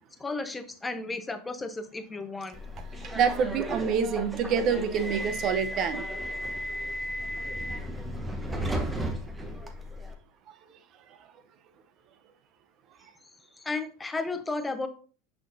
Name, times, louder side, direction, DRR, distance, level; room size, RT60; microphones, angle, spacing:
voice 1, 0.2-2.6 13.6-14.9, left 3 dB, 15° left, 0.8 m, -33 dB
Subway metro underground, 2.5-10.1, equal, 15° right, 1.0 m, -34 dB
voice 2, 3.0-6.0, right 6 dB, 45° right, 0.7 m, -27 dB
6.1 x 5.8 x 2.6 m
hypercardioid pair, 100°, 0 cm